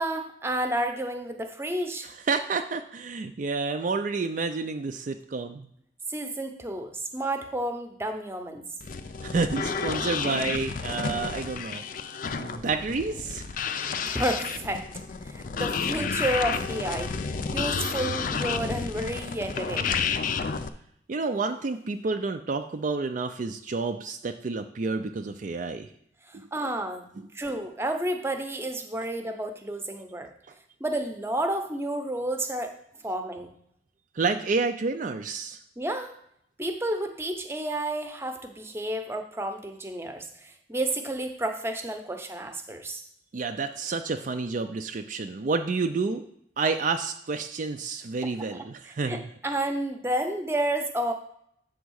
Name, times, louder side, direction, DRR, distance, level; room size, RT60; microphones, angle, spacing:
voice 1, 0.0-2.1 6.1-8.6 14.1-14.8 15.2-20.1 26.3-27.1 27.3-30.3 30.8-32.7 33.0-33.5 35.8-36.1 36.6-43.0 48.8-51.1, right 1 dB, 15° right, 5 dB, 0.7 m, -31 dB
voice 2, 2.3-5.7 9.2-11.8 12.4-13.4 21.1-25.9 26.3-26.5 34.2-35.6 43.3-46.2 46.6-49.2, right 4 dB, 45° right, 6 dB, 0.4 m, -29 dB
sound 1, 8.8-20.7, left 5 dB, 50° left, 0.5 m, -31 dB
8.0 x 3.6 x 6.3 m, 0.70 s
head